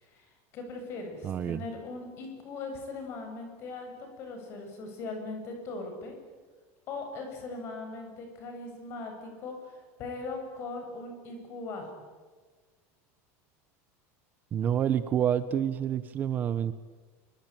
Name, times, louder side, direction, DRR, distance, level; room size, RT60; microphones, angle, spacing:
voice 1, 0.0-6.2 6.9-12.0, left 3 dB, 35° left, 5 dB, 7.9 m, -40 dB
voice 2, 1.2-1.6 14.5-16.7, right 9 dB, 25° right, 13 dB, 0.8 m, -28 dB
26.0 x 24.5 x 9.1 m, 1.4 s
cardioid pair, 175°, 8 cm